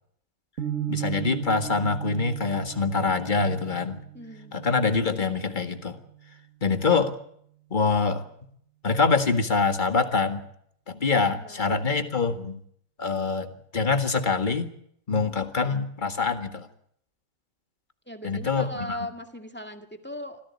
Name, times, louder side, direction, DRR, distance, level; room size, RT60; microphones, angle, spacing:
sound 1, 0.6-6.6, right 11 dB, 50° right, 1.6 m, -37 dB
voice 1, 0.9-4.0 4.5-6.0 6.6-7.2 7.7-8.2 8.8-10.4 10.9-12.6 13.0-14.7 15.1-16.7 18.2-19.0, left 4 dB, 25° left, 8 dB, 1.8 m, -25 dB
voice 2, 4.1-4.7 11.4-11.6 18.1-20.4, equal, 5° left, 6 dB, 2.0 m, -38 dB
25.5 x 15.5 x 8.5 m, 0.68 s
omnidirectional pair, 1.9 m